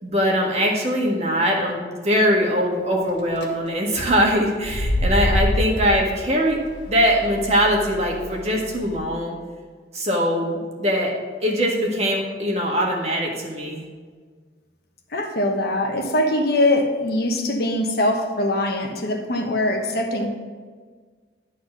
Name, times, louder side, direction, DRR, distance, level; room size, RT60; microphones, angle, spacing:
voice 1, 0.0-6.6 6.9-9.4 9.9-11.1 11.4-13.8, equal, 35° right, -1 dB, 1.6 m, -22 dB
sound 1, 3.1-3.4 4.5-9.0, left 1 dB, 80° left, 1.6 m, -26 dB
voice 2, 15.1-20.3, left 1 dB, 55° left, 2 dB, 1.1 m, -22 dB
12.0 x 4.2 x 6.1 m, 1.5 s
head